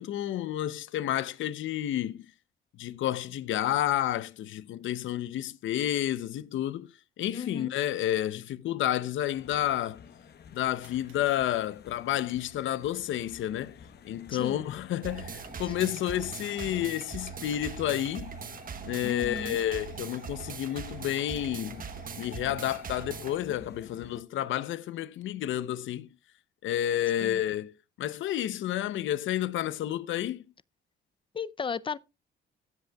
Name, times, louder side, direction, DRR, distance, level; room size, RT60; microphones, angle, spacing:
voice 1, 0.0-2.3 2.8-10.0 10.5-13.8 14.0-18.4 18.8-21.8 22.1-26.1 26.6-30.4, left 12 dB, 75° left, 0.7 m, -30 dB
sound 1, 6.5-6.6 7.5-7.6 10.8-11.5 15.8-16.7 19.0-19.7 21.3-22.5, right 8 dB, 85° right, 2.4 m, -61 dB
voice 2, 7.3-7.7 14.3-14.6 15.8-16.0 19.0-19.6 27.2-27.4 31.3-32.0, left 5 dB, 25° left, 0.5 m, -35 dB
sound 2, 9.3-24.2, left 7 dB, 55° left, 1.0 m, -51 dB
sound 3, 15.0-23.4, right 6 dB, 45° right, 1.0 m, -41 dB
16.0 x 8.0 x 2.3 m
cardioid pair, 90°, 20 cm